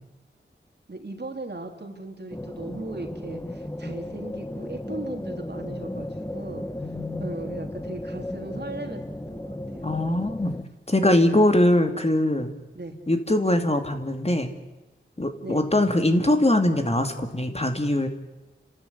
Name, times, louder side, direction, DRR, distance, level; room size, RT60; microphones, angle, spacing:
voice 1, 0.9-6.7 7.2-9.0 9.3-9.9 11.0-11.4 12.7-13.0 15.4-15.8, right 2 dB, 55° right, 4 dB, 3.3 m, -37 dB
sound 1, 2.3-10.6, left 1 dB, 15° left, 1.3 m, -35 dB
voice 2, 6.8-7.4 9.8-10.5 10.9-12.5 13.1-14.5 15.2-18.1, left 1 dB, 30° left, 6 dB, 2.5 m, -22 dB
30.0 x 13.0 x 9.8 m, 1.0 s
wide cardioid pair, 50°, 20 cm